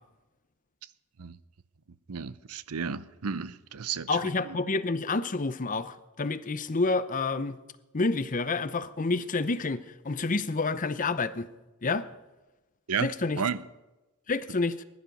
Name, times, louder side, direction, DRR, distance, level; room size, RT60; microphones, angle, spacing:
voice 1, 2.1-4.1 12.9-13.6, right 6 dB, 85° right, 0.7 m, -32 dB
voice 2, 4.1-7.6 7.9-11.5 11.8-12.1 13.0-13.4 14.3-14.8, left 3 dB, 35° left, 0.7 m, -29 dB
20.0 x 11.5 x 5.4 m
head